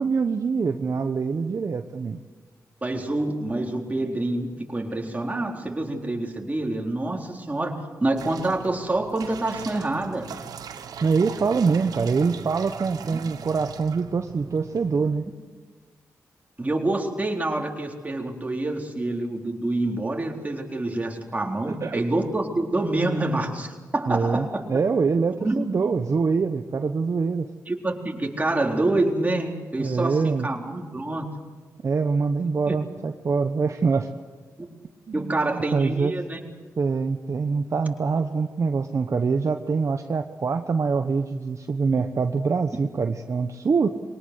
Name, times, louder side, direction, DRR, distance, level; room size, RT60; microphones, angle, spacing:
voice 1, 0.0-2.2 11.0-15.2 21.7-22.0 24.1-27.5 29.8-30.5 31.8-34.1 35.1-36.1 36.8-43.9, right 5 dB, 55° right, 6 dB, 1.1 m, -24 dB
voice 2, 2.8-7.8 8.0-10.3 13.0-13.2 16.6-24.6 25.4-25.6 27.7-31.3 32.7-32.8 34.6-34.7 35.1-36.4, right 2 dB, 25° right, 1 dB, 4.1 m, -27 dB
sound 1, 8.2-15.1, right 7 dB, 90° right, 1.3 m, -40 dB
23.0 x 19.0 x 8.2 m, 1.4 s
cardioid pair, 65°, 6 cm